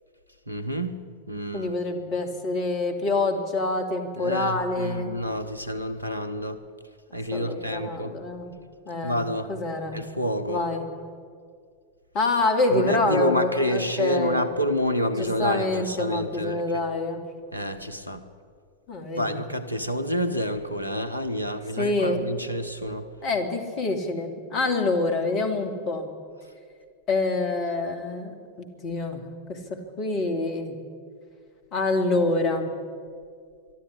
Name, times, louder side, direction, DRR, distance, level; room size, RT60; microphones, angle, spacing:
voice 1, 0.5-1.0 1.3-1.7 4.2-6.6 7.1-8.2 9.0-9.5 9.9-10.6 12.7-16.8 17.5-18.2 19.2-23.1, equal, 90° right, 10 dB, 1.2 m, -28 dB
voice 2, 1.5-5.1 7.3-8.5 8.9-9.2 9.5-10.0 10.5-10.8 12.1-14.5 15.2-17.2 18.9-19.4 21.8-22.2 23.2-26.1 27.1-29.2 29.5-30.8 31.7-32.7, left 3 dB, 40° left, 5 dB, 2.7 m, -26 dB
22.5 x 12.5 x 9.9 m, 2.1 s
figure-of-eight pair, 90°, 0 cm